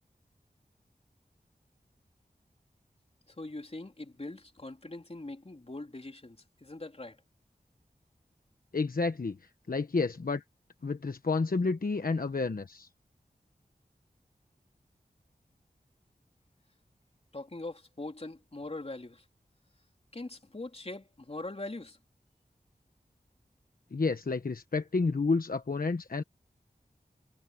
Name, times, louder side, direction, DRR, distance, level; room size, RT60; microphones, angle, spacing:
voice 1, 3.3-7.2 17.3-19.2 20.1-22.0, left 2 dB, 40° left, 3.6 m, -42 dB
voice 2, 8.7-9.4 9.7-10.4 10.8-12.9 23.9-26.2, left 4 dB, 65° left, 1.2 m, -30 dB
wide cardioid pair, 50°, 16 cm